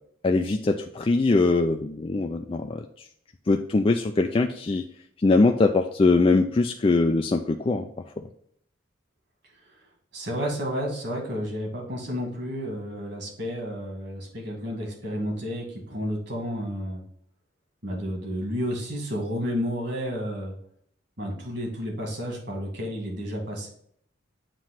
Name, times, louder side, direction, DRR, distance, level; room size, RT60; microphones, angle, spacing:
voice 1, 0.2-2.8 3.5-4.8 5.2-7.9 8.2-8.3, left 3 dB, 25° left, 4 dB, 0.3 m, -22 dB
voice 2, 10.1-17.0 17.8-20.6 21.2-23.7, equal, 55° right, 0 dB, 2.2 m, -31 dB
7.5 x 3.0 x 5.9 m, 0.64 s
head